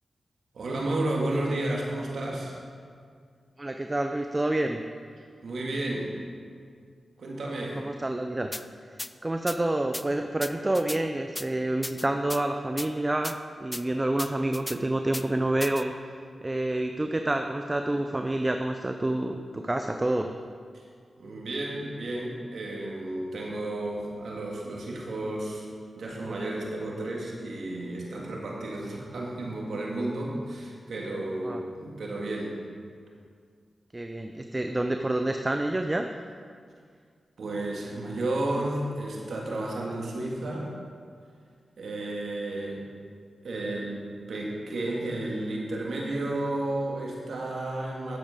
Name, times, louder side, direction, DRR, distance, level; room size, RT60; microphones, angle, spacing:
voice 1, 0.5-2.6 5.4-6.1 7.2-7.8 20.7-20.8 21.2-25.6 26.0-32.6 37.4-40.7 41.8-42.8 43.4-48.2, right 1 dB, 75° right, -2 dB, 2.1 m, -32 dB
voice 2, 3.6-4.8 7.8-8.5 8.9-16.1 16.4-20.3 31.4-31.6 33.9-36.1, right 1 dB, 25° right, 5 dB, 0.6 m, -28 dB
sound 1, 8.5-8.6 9.0-9.1 9.5-9.6 9.9-10.0 10.4-11.0 11.4-11.5 11.8-12.4 12.8-12.9 13.2-13.4 13.7-13.8 14.2-14.8 15.1-15.2 15.6-15.8, left 1 dB, 20° left, 0.4 m, -35 dB
10.5 x 7.9 x 5.1 m, 2.1 s
cardioid pair, 40°, 0 cm